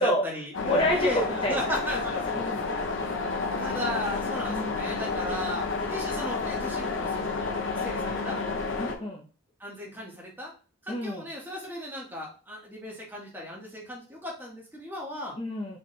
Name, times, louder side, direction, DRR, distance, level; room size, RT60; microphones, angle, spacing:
voice 1, 0.0-2.4 3.6-7.4 7.7-8.4 9.6-10.5 10.8-15.3, left 1 dB, 10° right, -3 dB, 1.3 m, -36 dB
sound 1, 0.5-9.0, left 4 dB, 65° left, 0.8 m, -30 dB
voice 2, 0.6-1.7 2.3-2.7 4.4-4.9 8.8-9.2 10.9-11.3 15.4-15.8, equal, 25° left, -1 dB, 0.6 m, -28 dB
4.1 x 3.3 x 3.2 m, 0.36 s
head